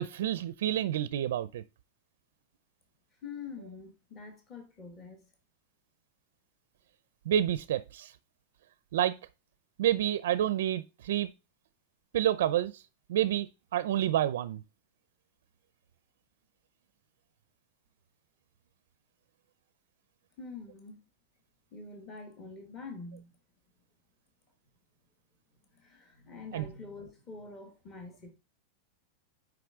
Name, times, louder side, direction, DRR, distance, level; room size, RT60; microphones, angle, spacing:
voice 1, 0.0-1.6 7.3-8.1 8.9-9.2 9.8-11.3 12.1-12.8 13.1-13.5 13.7-14.6 26.5-26.6, right 11 dB, 75° right, 0.4 m, -28 dB
voice 2, 3.2-5.3 20.4-21.0 21.7-23.3 25.7-28.3, left 4 dB, 20° left, 1.2 m, -45 dB
6.0 x 5.0 x 3.6 m
supercardioid pair, 175°, 0 cm